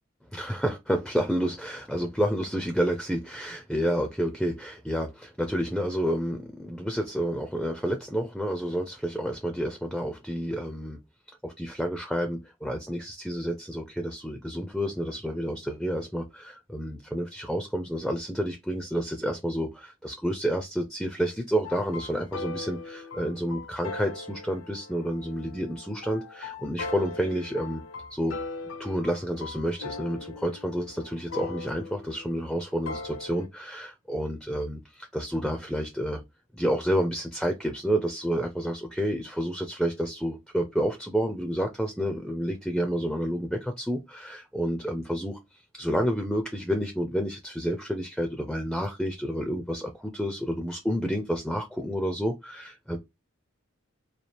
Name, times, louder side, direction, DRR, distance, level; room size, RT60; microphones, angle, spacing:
voice 1, 0.3-11.0 11.4-27.8 28.1-28.4 28.8-36.2 36.5-53.0, equal, ahead, 0.4 m, -29 dB
sound 1, 21.6-33.5, left 3 dB, 75° left, 0.6 m, -40 dB
4.2 x 2.4 x 3.2 m
head